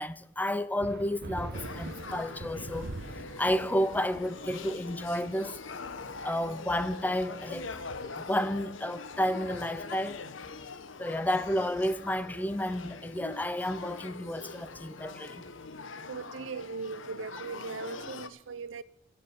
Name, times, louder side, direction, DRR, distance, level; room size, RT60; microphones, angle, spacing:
voice 1, 0.0-2.9 3.4-5.6 6.2-7.7 8.2-10.2 11.0-15.4, left 1 dB, 10° left, 0.5 m, -31 dB
sound 1, 0.8-10.8, right 2 dB, 60° right, 1.2 m, -45 dB
Male speech man speaking / Child speech kid speaking / Conversation, 1.5-18.3, left 4 dB, 85° left, 0.9 m, -43 dB
voice 2, 16.1-18.8, right 4 dB, 85° right, 0.7 m, -39 dB
15.5 x 6.8 x 8.6 m
head